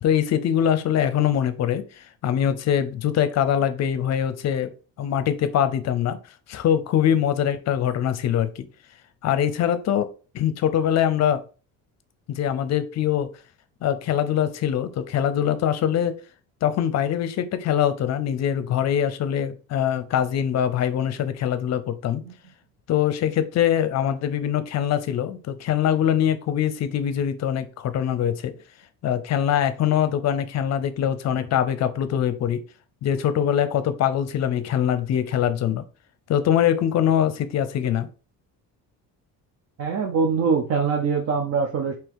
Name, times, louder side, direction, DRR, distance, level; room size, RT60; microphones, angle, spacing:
voice 1, 0.0-4.7 5.0-6.2 6.5-8.6 9.2-10.1 10.3-11.4 12.3-13.3 13.8-16.2 16.6-22.2 22.9-28.5 29.0-32.6 33.0-35.8 36.3-38.1, left 9 dB, 50° left, 0.6 m, -23 dB
voice 2, 39.8-41.9, right 5 dB, 45° right, 0.7 m, -23 dB
3.7 x 2.9 x 4.7 m
cardioid pair, 145°, 35 cm